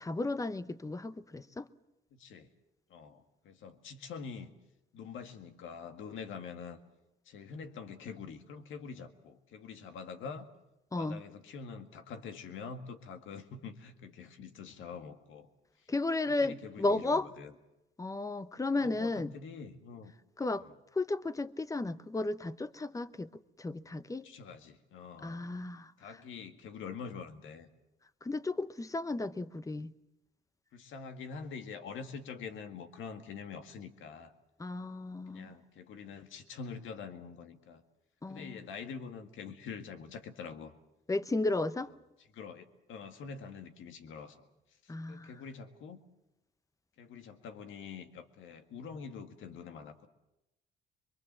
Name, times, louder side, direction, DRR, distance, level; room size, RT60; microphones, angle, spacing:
voice 1, 0.0-1.7 10.9-11.2 15.9-17.3 18.0-19.3 20.4-20.6 20.9-24.3 25.2-25.9 28.2-29.9 34.6-35.5 38.2-38.6 41.1-41.9 44.9-45.3, left 2 dB, 15° left, 0.8 m, -34 dB
voice 2, 2.1-2.5 2.9-4.5 4.9-6.8 7.3-10.5 11.0-15.5 15.8-15.9 16.3-17.5 18.8-20.1 20.6-20.8 24.2-25.5 26.0-27.7 30.7-34.3 35.3-37.8 38.3-40.7 42.3-44.5 44.8-46.0 47.0-50.1, left 5 dB, 80° left, 1.9 m, -45 dB
23.5 x 23.0 x 7.5 m
cardioid pair, 90°, 20 cm